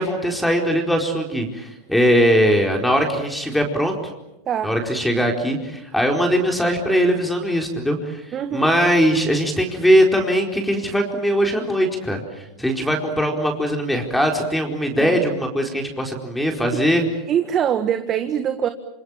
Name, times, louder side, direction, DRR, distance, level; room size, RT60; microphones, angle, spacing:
voice 1, 0.0-4.0 4.6-17.0, equal, 5° left, 2 dB, 4.5 m, -20 dB
voice 2, 8.3-8.7 15.0-15.2 16.7-17.0 17.3-18.7, right 9 dB, 35° right, 9 dB, 1.6 m, -23 dB
27.0 x 27.0 x 7.4 m, 0.94 s
hypercardioid pair, 90°, 0 cm